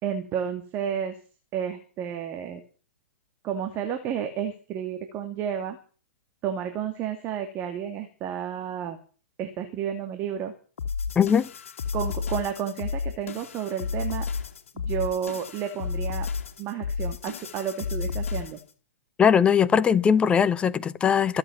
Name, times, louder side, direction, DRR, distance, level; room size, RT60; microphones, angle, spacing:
voice 1, 0.0-1.2 1.5-2.6 3.4-5.8 6.4-9.0 9.4-10.5 11.9-14.3 14.7-16.3 16.6-18.6, right 9 dB, 30° right, 2.5 m, -31 dB
sound 1, 10.8-18.7, left 5 dB, 65° left, 2.6 m, -32 dB
voice 2, 11.2-11.5 19.2-21.4, left 7 dB, 15° left, 0.8 m, -20 dB
23.0 x 8.3 x 7.3 m
hypercardioid pair, 125°, 8 cm